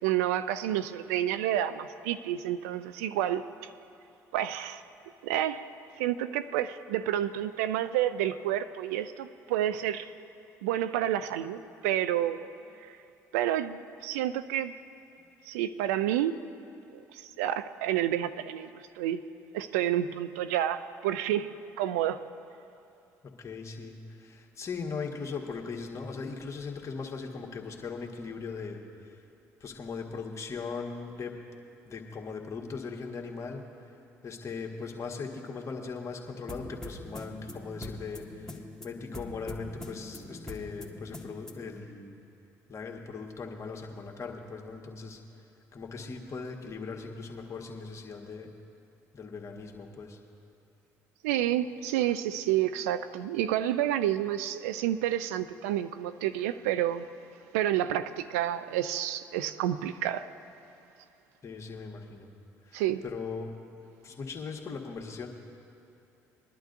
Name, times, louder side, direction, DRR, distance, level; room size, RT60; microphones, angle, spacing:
voice 1, 0.0-3.7 4.3-4.8 5.2-5.7 6.0-10.1 10.6-12.5 12.8-12.9 13.3-14.7 15.5-16.4 17.1-19.2 19.5-22.2 51.2-57.1 57.5-60.3 62.7-63.0, right 12 dB, 85° right, 0.4 m, -29 dB
voice 2, 23.2-29.2 29.6-31.4 31.9-33.9 34.2-42.2 42.7-45.2 45.7-48.5 49.1-50.2 61.4-62.3 62.6-63.5 64.0-65.3, left 4 dB, 40° left, 1.6 m, -39 dB
sound 1, 36.5-41.8, left 2 dB, 5° left, 1.6 m, -43 dB
22.0 x 11.0 x 2.6 m
hypercardioid pair, 60°, 8 cm